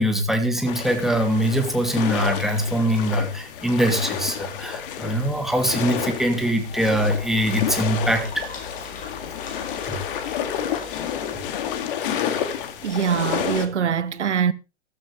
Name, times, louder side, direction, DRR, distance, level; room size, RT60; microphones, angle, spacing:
voice 1, 0.0-8.5 9.9-10.0, equal, ahead, 2.5 m, -22 dB
sound 1, 0.7-13.7, left 9 dB, 50° left, 2.4 m, -30 dB
sound 2, 6.7-11.8, left 4 dB, 25° left, 4.6 m, -41 dB
voice 2, 12.8-14.5, right 7 dB, 75° right, 0.9 m, -23 dB
15.0 x 13.0 x 3.4 m
figure-of-eight pair, 110°, 35 cm